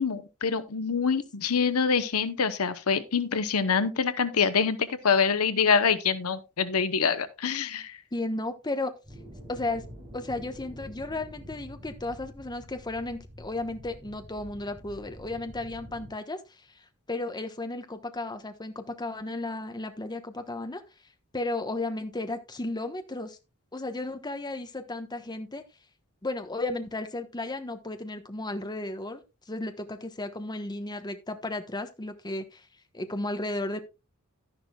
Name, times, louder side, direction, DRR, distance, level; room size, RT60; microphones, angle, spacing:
voice 1, 0.0-8.0, left 6 dB, 70° left, 0.9 m, -25 dB
voice 2, 8.1-8.9 9.5-9.8 10.1-16.4 16.7-16.8 17.1-20.8 21.3-23.4 23.7-25.6 26.2-29.2 29.5-32.7 32.9-33.8, left 2 dB, 20° left, 1.1 m, -34 dB
sound 1, 9.0-16.1, equal, 20° right, 6.0 m, -47 dB
12.0 x 11.0 x 2.3 m
head